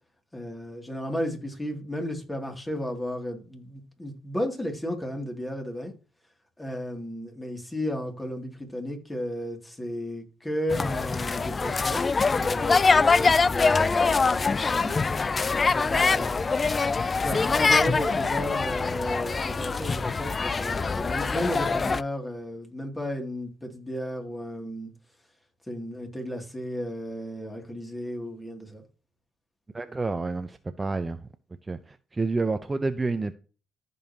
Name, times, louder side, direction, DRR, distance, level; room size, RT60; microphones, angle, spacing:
voice 1, 0.3-5.9 6.6-12.0 12.4-14.4 14.7-14.9 15.7-16.6 17.0-24.9 25.7-28.8, equal, 15° left, 2.6 m, -33 dB
sound 1, 10.7-22.0, left 4 dB, 35° left, 0.3 m, -24 dB
voice 2, 29.7-31.3 31.7-33.3, right 3 dB, 25° right, 0.6 m, -29 dB
14.5 x 5.4 x 2.9 m
cardioid pair, 85°, 0 cm